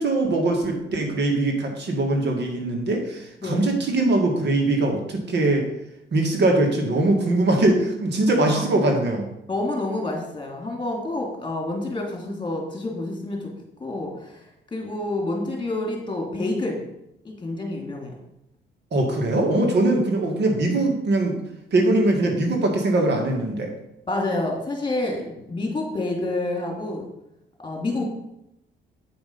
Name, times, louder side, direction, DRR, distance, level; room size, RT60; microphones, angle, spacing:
voice 1, 0.0-5.7 6.1-9.3 18.9-21.4 21.7-23.7, right 2 dB, 60° right, 2 dB, 1.9 m, -21 dB
voice 2, 9.5-13.5 13.8-16.8 17.2-18.1 24.1-27.1 27.6-28.1, left 2 dB, 25° left, 0 dB, 2.5 m, -28 dB
8.8 x 5.2 x 5.2 m, 0.83 s
cardioid pair, 90°, 20 cm